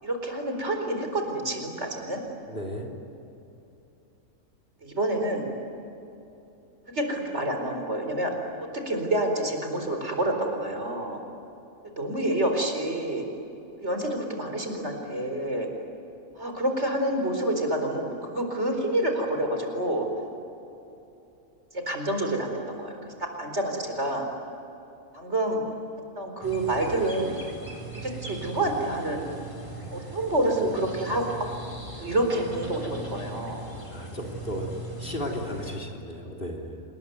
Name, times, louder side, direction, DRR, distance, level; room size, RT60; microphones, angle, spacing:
voice 1, 0.0-2.2 4.8-5.5 6.9-8.3 8.7-11.2 12.0-13.2 13.8-15.7 16.4-20.1 21.9-24.2 25.1-25.6 26.2-27.4 28.0-29.2 29.9-31.5 32.0-33.6, right 1 dB, 55° right, 3 dB, 4.7 m, -28 dB
voice 2, 2.5-2.9 33.9-36.8, equal, 40° left, 3 dB, 3.6 m, -35 dB
sound 1, 26.4-35.8, right 2 dB, 20° left, 4.5 m, -39 dB
28.0 x 21.0 x 9.4 m, 2.9 s
omnidirectional pair, 1.4 m